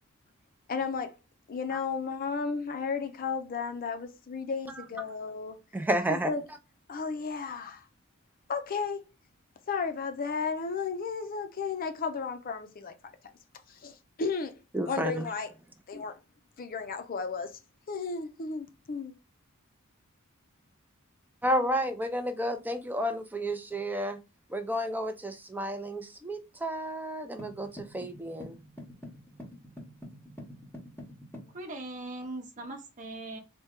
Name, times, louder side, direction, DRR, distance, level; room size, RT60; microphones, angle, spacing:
voice 1, 0.7-1.2 1.5-5.6 6.1-6.4 6.9-7.9 8.5-9.0 9.7-12.9 13.7-14.6 14.9-15.5 15.9-16.2 16.6-17.6 17.9-19.1, left 5 dB, 40° left, 0.5 m, -33 dB
voice 2, 5.7-6.3 14.7-15.3 21.4-24.2 24.5-28.6, equal, 10° right, 0.5 m, -31 dB
sound 1, 27.4-31.6, equal, 10° left, 0.9 m, -47 dB
voice 3, 31.5-33.4, right 2 dB, 35° right, 0.8 m, -40 dB
4.1 x 2.2 x 3.5 m
head